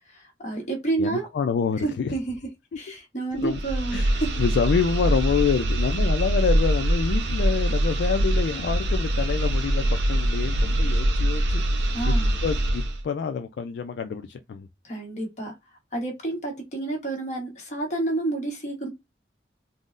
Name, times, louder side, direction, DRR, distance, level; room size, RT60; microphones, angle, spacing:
voice 1, 0.0-1.3 1.8-2.3 2.8-4.3 11.9-12.3 14.8-15.5 15.9-18.9, right 2 dB, 40° left, 1.1 m, -29 dB
voice 2, 1.0-2.1 3.3-3.6 3.9-12.2 12.4-14.7, left 6 dB, 75° left, 0.3 m, -27 dB
sound 1, 3.3-13.0, right 1 dB, 80° right, 0.5 m, -23 dB
3.6 x 2.0 x 2.4 m
head